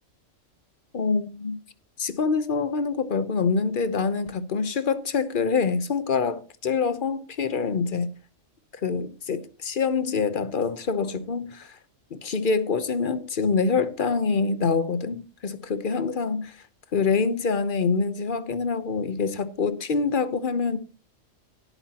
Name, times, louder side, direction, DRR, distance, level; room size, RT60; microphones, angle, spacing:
voice 1, 0.9-1.6 2.0-8.1 8.8-11.8 12.1-16.6 16.9-20.8, left 5 dB, 45° left, 1.0 m, -25 dB
18.0 x 8.6 x 2.9 m
omnidirectional pair, 1.3 m